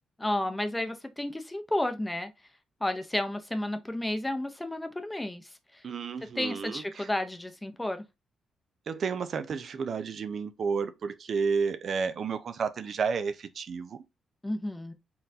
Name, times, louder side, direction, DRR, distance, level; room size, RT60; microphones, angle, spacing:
voice 1, 0.2-2.3 2.8-5.8 6.4-8.0 14.4-14.9, left 1 dB, 10° left, 0.7 m, -32 dB
voice 2, 5.8-7.1 8.9-14.0, right 5 dB, 55° right, 0.6 m, -31 dB
4.3 x 3.8 x 2.7 m
cardioid pair, 110°, 0 cm